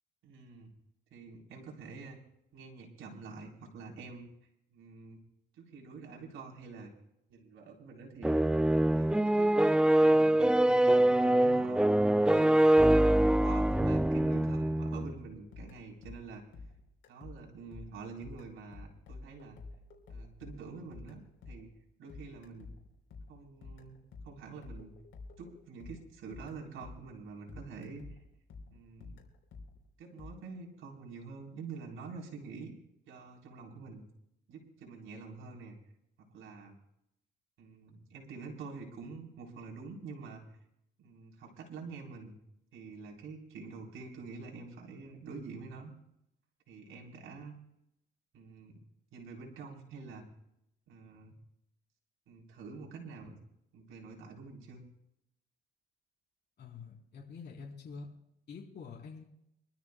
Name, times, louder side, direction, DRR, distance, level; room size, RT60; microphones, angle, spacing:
voice 1, 0.2-0.7 1.1-2.2 2.5-4.3 4.7-5.2 5.5-6.9 7.3-8.4 8.9-9.6 10.0-11.8 12.2-16.5 17.1-19.6 20.1-21.7 22.0-22.7 23.3-24.0 24.2-24.9 25.4-28.2 28.7-29.2 30.0-32.8 33.1-34.1 34.5-35.8 36.2-36.7 37.6-40.6 41.0-42.4 42.7-45.9 46.7-47.5 48.3-48.8 49.1-50.3 50.9-51.4 52.3-53.4 53.7-54.8, right 4 dB, 85° right, 0 dB, 3.7 m, -47 dB
sound 1, 8.2-15.2, right 1 dB, 5° right, 0.3 m, -24 dB
sound 2, 15.3-27.2 27.5-30.3, left 3 dB, 80° left, 3.7 m, -51 dB
voice 2, 56.6-58.1 58.5-59.2, left 5 dB, 55° left, -2 dB, 3.7 m, -46 dB
26.0 x 13.0 x 2.2 m, 0.82 s
cardioid pair, 90°, 20 cm